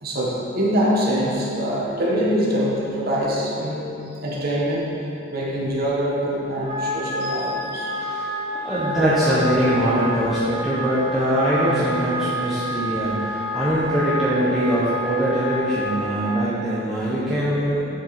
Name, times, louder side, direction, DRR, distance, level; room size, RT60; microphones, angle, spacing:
voice 1, 0.0-4.9 5.3-7.9, equal, 50° right, -5 dB, 1.6 m, -24 dB
Wind instrument woodwind instrument, 6.5-16.4, equal, 25° right, 1.0 m, -29 dB
voice 2, 8.0-8.3 8.6-17.9, equal, ahead, -12 dB, 1.1 m, -22 dB
7.4 x 7.1 x 4.3 m, 2.9 s
head